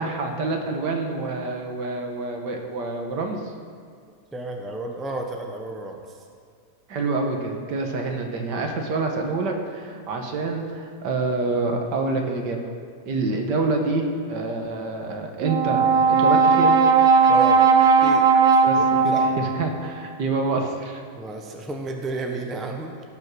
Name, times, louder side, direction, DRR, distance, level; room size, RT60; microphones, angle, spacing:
voice 1, 0.0-3.4 6.9-12.6 13.1-16.8 18.6-21.0, right 3 dB, 85° right, 3 dB, 1.8 m, -27 dB
voice 2, 4.3-6.0 11.7-11.8 17.3-17.7 18.0-18.3 18.8-18.9 19.1-19.3 21.2-23.0, right 2 dB, ahead, 2 dB, 0.5 m, -32 dB
Brass instrument, 15.4-19.8, right 5 dB, 60° right, 1.2 m, -17 dB
16.0 x 5.8 x 6.1 m, 2.1 s
omnidirectional pair, 1.8 m